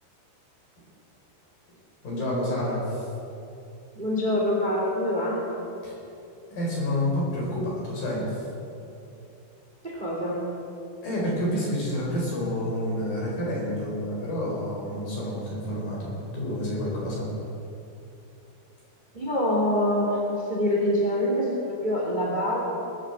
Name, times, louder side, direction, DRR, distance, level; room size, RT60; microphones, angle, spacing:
voice 1, 2.0-3.1 5.8-5.9 6.5-8.4 11.0-17.3, left 1 dB, 50° left, -4 dB, 6.0 m, -29 dB
voice 2, 3.9-5.5 9.8-10.5 19.1-22.6, left 1 dB, 15° right, -4 dB, 2.4 m, -25 dB
19.5 x 9.2 x 8.0 m, 2.7 s
omnidirectional pair, 5.0 m